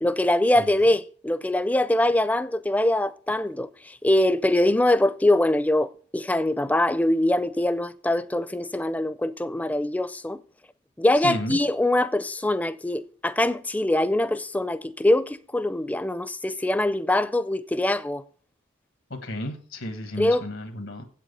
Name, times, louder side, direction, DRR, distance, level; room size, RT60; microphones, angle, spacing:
voice 1, 0.0-10.4 11.0-18.2 20.2-20.4, left 1 dB, 10° left, 0.4 m, -23 dB
voice 2, 11.2-11.6 19.1-21.0, left 1 dB, 80° left, 1.5 m, -33 dB
8.1 x 7.6 x 6.7 m
head